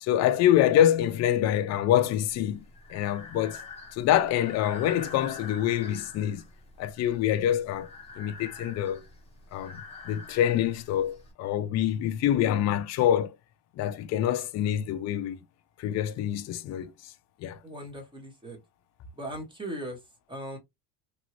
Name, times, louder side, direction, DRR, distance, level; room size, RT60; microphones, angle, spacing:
voice 1, 0.0-2.6 2.9-3.6 3.9-6.4 6.8-7.9 8.2-9.0 9.5-13.4 13.8-15.4 15.8-16.9 17.4-17.6, left 11 dB, 35° left, 0.4 m, -26 dB
Breathing, 2.3-11.3, left 4 dB, 10° left, 0.9 m, -45 dB
voice 2, 17.6-18.6 19.1-20.0 20.3-20.6, right 1 dB, 10° right, 1.1 m, -38 dB
3.0 x 2.6 x 2.9 m
cardioid pair, 140°, 49 cm